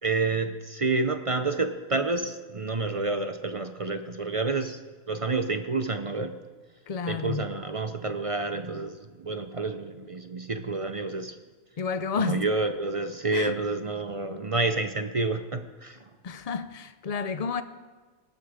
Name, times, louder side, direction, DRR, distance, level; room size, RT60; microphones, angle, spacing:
voice 1, 0.0-4.8 5.1-6.4 7.1-11.4 12.2-16.0, right 3 dB, 50° right, 0.4 m, -29 dB
voice 2, 6.9-7.4 11.8-12.4 13.3-13.5 16.2-17.6, left 5 dB, 70° left, 0.3 m, -30 dB
19.0 x 13.0 x 5.0 m
omnidirectional pair, 1.5 m